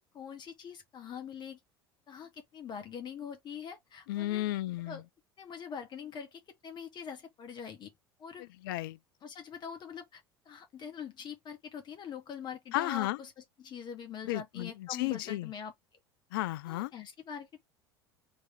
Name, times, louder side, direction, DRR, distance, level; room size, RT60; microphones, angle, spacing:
voice 1, 0.1-1.6 2.1-4.4 4.8-5.0 5.4-7.9 8.2-8.4 9.2-15.7 16.6-17.6, left 7 dB, 35° left, 1.4 m, -43 dB
voice 2, 4.1-5.0 8.6-9.0 12.7-13.2 14.2-15.5 16.3-16.9, left 17 dB, 60° left, 0.4 m, -33 dB
3.3 x 3.3 x 4.1 m
figure-of-eight pair, 70°, 13 cm